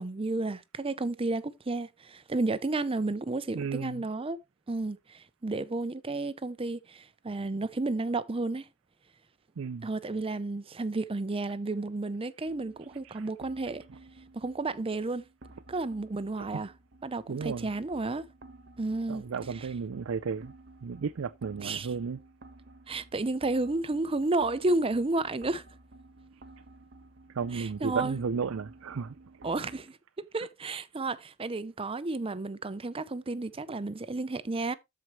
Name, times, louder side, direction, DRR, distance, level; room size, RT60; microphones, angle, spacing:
voice 1, 0.0-4.4 4.7-8.7 9.8-13.8 14.3-15.2 15.7-16.7 17.0-18.2 18.8-19.2 19.5-19.7 21.6-21.9 22.9-25.6 27.5-28.2 29.4-30.0 30.3-34.7, right 2 dB, 25° right, 0.6 m, -32 dB
voice 2, 3.5-4.0 9.6-9.9 13.0-13.2 16.4-16.5 17.3-17.7 19.1-20.5 20.8-22.2 27.3-29.1 29.6-29.7, right 5 dB, 85° right, 0.5 m, -33 dB
sound 1, 12.4-29.8, right 2 dB, 55° right, 1.2 m, -53 dB
13.5 x 4.7 x 3.1 m
head